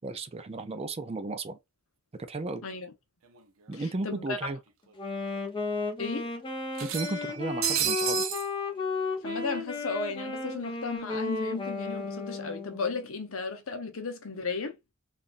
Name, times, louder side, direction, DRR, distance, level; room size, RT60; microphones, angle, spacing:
voice 1, 0.0-1.6 2.3-2.6 3.7-4.6 6.8-8.2, right 2 dB, 30° right, 0.4 m, -34 dB
voice 2, 2.6-2.9 3.7-4.4 6.0-6.3 9.2-14.8, left 4 dB, 70° left, 0.8 m, -35 dB
sound 1, 3.4-3.5 3.7-3.8 4.9-5.0 5.4-5.5 6.8-8.5, right 11 dB, 65° right, 0.6 m, -31 dB
Wind instrument woodwind instrument, 5.0-13.0, left 4 dB, 25° left, 0.8 m, -34 dB
3.8 x 2.5 x 2.5 m
head